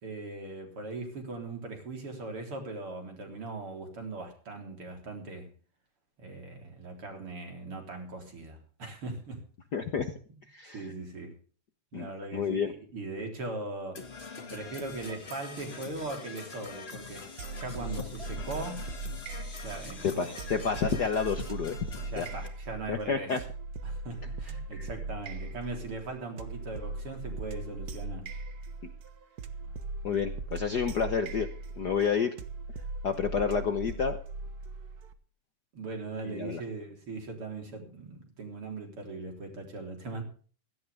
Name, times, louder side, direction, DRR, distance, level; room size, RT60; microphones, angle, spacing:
voice 1, 0.0-5.5 6.2-9.4 10.7-11.4 11.9-14.0 14.5-18.9 19.6-20.3 22.0-23.4 23.8-28.3 35.7-40.2, right 2 dB, 45° right, 4.6 m, -39 dB
voice 2, 9.7-10.1 10.5-10.8 11.9-12.7 20.0-21.8 22.2-22.3 22.9-23.4 24.8-24.9 30.0-31.5 31.8-32.3 33.0-34.2 36.2-36.6, left 6 dB, 90° left, 0.9 m, -29 dB
Percussion / Brass instrument, 13.9-22.5, left 4 dB, 25° left, 1.6 m, -44 dB
sound 1, 17.4-35.1, right 3 dB, 80° right, 0.8 m, -39 dB
17.0 x 15.5 x 3.5 m
omnidirectional pair, 3.5 m